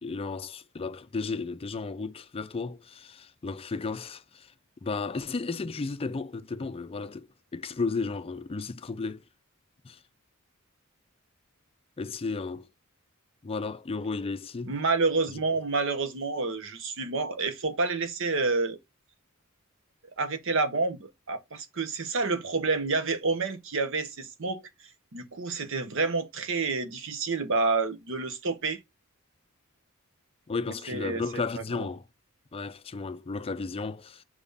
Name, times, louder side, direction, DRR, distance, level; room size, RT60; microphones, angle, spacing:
voice 1, 0.0-4.5 4.8-9.2 9.8-10.0 12.0-12.7 13.4-14.7 30.5-32.0 32.5-34.2, left 4 dB, 25° left, 0.4 m, -34 dB
voice 2, 14.7-18.8 20.2-24.6 25.1-28.8 30.9-31.2 31.6-31.8, right 3 dB, 65° right, 0.9 m, -29 dB
4.8 x 3.6 x 5.4 m
head